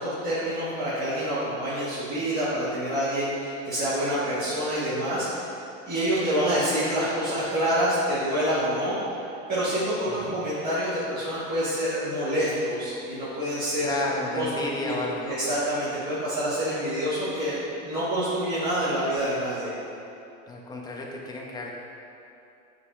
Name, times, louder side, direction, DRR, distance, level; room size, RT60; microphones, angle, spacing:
voice 1, 0.0-5.5 5.9-9.0 9.5-14.0 14.3-14.5 14.8-19.7, equal, 25° right, -12 dB, 1.2 m, -27 dB
voice 2, 10.1-10.4 13.8-15.4 20.5-21.8, left 2 dB, 10° left, -2 dB, 0.5 m, -32 dB
6.6 x 3.4 x 2.3 m, 2.8 s
supercardioid pair, 105°, 38 cm